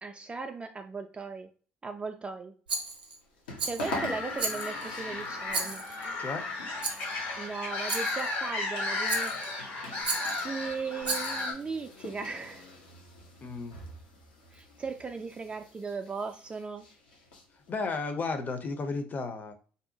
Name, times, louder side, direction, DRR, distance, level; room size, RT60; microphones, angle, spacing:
voice 1, 0.0-1.5 1.8-2.5 3.6-5.8 7.4-9.6 10.4-12.7 14.5-16.9, right 4 dB, 25° right, 6 dB, 0.3 m, -37 dB
sound 1, 2.7-17.9, left 2 dB, 80° left, 0.7 m, -46 dB
Rattle, 2.7-3.2 3.6-4.0 4.4-4.9 5.5-6.1 6.8-7.1 7.9-8.3 9.1-9.5 10.0-10.5 11.0-11.5, right 4 dB, 90° right, 0.5 m, -34 dB
sound 2, 3.9-11.5, left 3 dB, 60° left, 1.0 m, -34 dB
voice 2, 13.4-13.8 17.7-19.5, left 4 dB, 35° left, 7 dB, 0.6 m, -33 dB
2.7 x 2.1 x 2.7 m, 0.40 s
hypercardioid pair, 55°, 5 cm